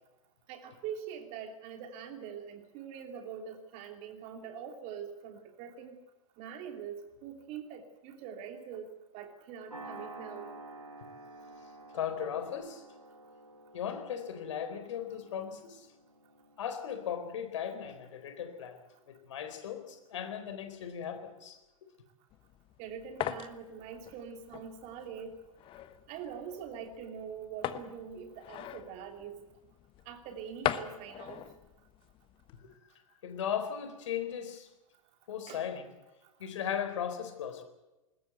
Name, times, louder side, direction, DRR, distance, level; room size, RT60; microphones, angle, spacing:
voice 1, 0.5-6.0 6.4-10.5 22.8-25.4 26.1-29.4 30.0-31.4 35.5-35.6 36.4-36.5, right 7 dB, 40° right, 5 dB, 3.0 m, -44 dB
sound 1, 9.7-18.2, right 2 dB, 90° right, 6.3 m, -50 dB
voice 2, 11.9-12.8 13.7-15.9 16.6-18.8 19.1-21.6 32.6-32.7 33.2-34.7 35.3-35.9 36.4-37.6, left 8 dB, 60° left, 8 dB, 4.1 m, -37 dB
sound 2, 22.3-32.7, left 12 dB, 30° left, 1.3 m, -41 dB
21.0 x 21.0 x 8.1 m, 1.0 s
figure-of-eight pair, 100°, 18 cm